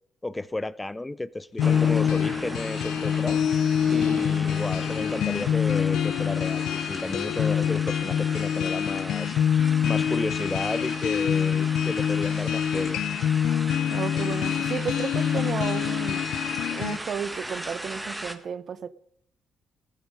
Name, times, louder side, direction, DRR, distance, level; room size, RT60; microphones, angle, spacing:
voice 1, 0.2-3.4 3.9-9.4 9.8-13.0, left 2 dB, 15° left, 0.5 m, -33 dB
sound 1, 1.6-17.0, left 9 dB, 85° left, 0.8 m, -25 dB
sound 2, 1.6-18.3, right 1 dB, 10° right, 1.6 m, -37 dB
voice 2, 13.9-16.2 16.7-18.9, right 7 dB, 55° right, 0.9 m, -33 dB
16.0 x 9.4 x 5.2 m
cardioid pair, 90°, 0 cm